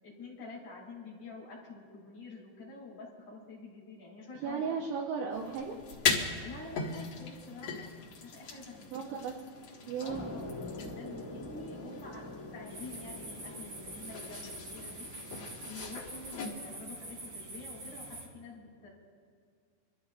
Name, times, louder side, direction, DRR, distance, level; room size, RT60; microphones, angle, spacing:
voice 1, 0.0-4.7 6.4-7.9 8.2-8.9 10.0-15.1 15.6-18.9, left 3 dB, 40° left, -3 dB, 3.6 m, -48 dB
voice 2, 4.4-5.8 8.9-9.4 9.9-10.3, right 6 dB, 75° right, 0 dB, 3.1 m, -35 dB
sound 1, 5.3-16.5, left 5 dB, 70° left, 1.7 m, -39 dB
sound 2, 10.1-16.4, left 2 dB, 5° left, 2.6 m, -46 dB
sound 3, 12.7-18.3, right 2 dB, 40° right, 3.6 m, -45 dB
28.0 x 13.0 x 2.5 m, 2.1 s
omnidirectional pair, 5.5 m